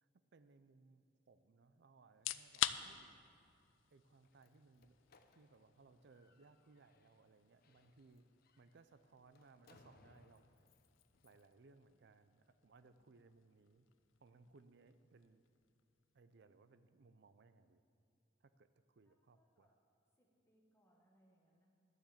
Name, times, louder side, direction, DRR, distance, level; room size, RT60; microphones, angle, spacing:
voice 1, 0.0-3.2 3.9-5.0 5.3-8.3 8.6-10.5 11.2-13.9 14.2-15.4 16.1-17.8 18.4-19.7, right 3 dB, 60° right, 11 dB, 0.5 m, -66 dB
sound 1, 2.1-16.9, left 12 dB, 80° left, 0.4 m, -49 dB
Slam, 4.1-11.5, left 3 dB, 50° left, 0.7 m, -71 dB
voice 2, 19.0-19.7 20.2-21.7, equal, 15° left, -2 dB, 1.5 m, -75 dB
12.0 x 7.1 x 7.8 m, 2.5 s
head